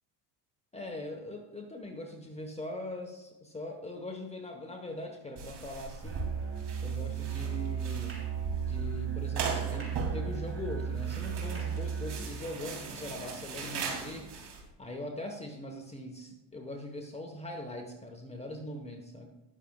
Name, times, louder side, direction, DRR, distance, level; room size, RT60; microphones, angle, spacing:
voice 1, 0.7-6.3 6.8-8.2 8.7-14.3 14.8-19.3, left 1 dB, 15° left, 2 dB, 1.3 m, -41 dB
sound 1, 5.4-14.6, right 4 dB, 55° right, 2.9 m, -40 dB
Musical instrument, 6.0-12.3, right 8 dB, 30° right, 3.2 m, -35 dB
19.5 x 6.8 x 2.4 m, 1.1 s
supercardioid pair, 110°, 48 cm